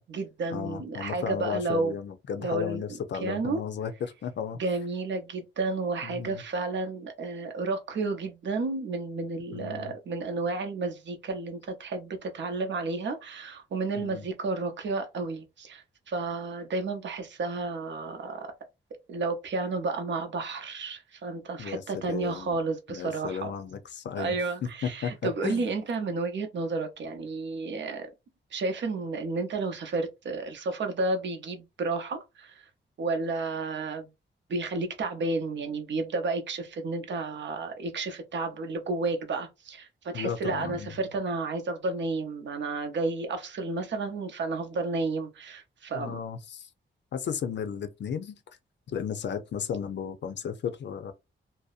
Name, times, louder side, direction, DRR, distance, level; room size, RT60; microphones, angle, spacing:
voice 1, 0.0-1.9 2.4-2.8 3.2-3.6 4.6-18.5 19.1-23.5 24.2-28.1 28.5-32.6 33.0-34.1 34.5-46.2, right 3 dB, 65° right, 0.6 m, -31 dB
voice 2, 0.5-4.6 6.0-6.4 9.5-9.9 14.0-14.2 21.6-22.6 22.9-24.4 24.8-25.1 25.4-25.7 40.1-41.0 45.9-46.7 47.1-48.4 48.9-51.1, left 7 dB, 60° left, 0.5 m, -34 dB
2.6 x 2.0 x 2.4 m
wide cardioid pair, 110°, 20 cm